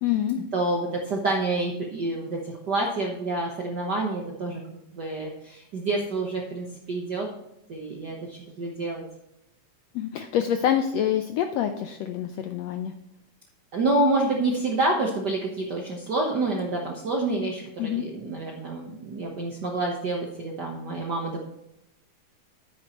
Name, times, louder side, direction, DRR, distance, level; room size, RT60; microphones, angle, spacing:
voice 1, 0.0-0.4 9.9-12.9 17.8-18.0, left 10 dB, 90° left, 7 dB, 1.5 m, -26 dB
voice 2, 0.5-7.3 7.7-9.0 13.7-21.4, right 2 dB, 85° right, -1 dB, 0.9 m, -28 dB
9.7 x 9.2 x 3.0 m, 0.84 s
omnidirectional pair, 3.7 m